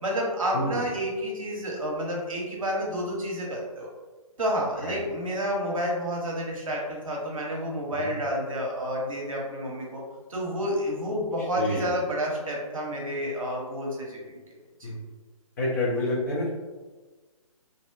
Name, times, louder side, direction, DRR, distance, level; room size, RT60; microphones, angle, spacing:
voice 1, 0.0-3.9 4.4-10.0 10.3-14.4 14.8-14.9, equal, 65° right, -2 dB, 0.8 m, -30 dB
voice 2, 0.5-0.8 4.8-5.0 7.9-8.1 11.6-11.9 14.8-15.0 15.6-16.5, left 1 dB, 30° left, -6 dB, 0.6 m, -28 dB
2.5 x 2.1 x 2.4 m, 1.3 s
figure-of-eight pair, 135°, 18 cm